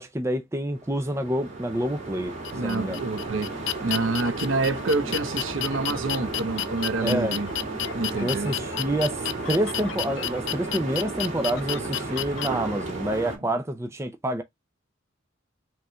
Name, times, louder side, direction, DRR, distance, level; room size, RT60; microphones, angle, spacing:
voice 1, 0.0-2.3 2.6-3.0 7.0-7.3 8.2-14.4, right 1 dB, 15° right, 0.5 m, -28 dB
sound 1, 0.7-13.4, right 3 dB, 35° right, 2.4 m, -34 dB
sound 2, 2.4-12.5, left 12 dB, 70° left, 0.4 m, -32 dB
voice 2, 2.5-7.5 7.9-8.6, right 3 dB, 80° right, 0.9 m, -28 dB
5.3 x 3.6 x 2.2 m
head